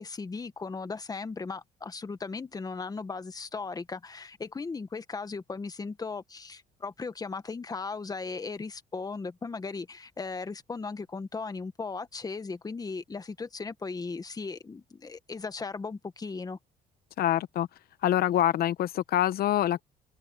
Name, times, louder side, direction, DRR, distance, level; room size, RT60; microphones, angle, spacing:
voice 1, 0.0-16.6, left 4 dB, 20° left, 1.4 m, -37 dB
voice 2, 17.2-17.7 18.0-19.8, left 12 dB, 65° left, 1.0 m, -25 dB
cardioid pair, 110°, 17 cm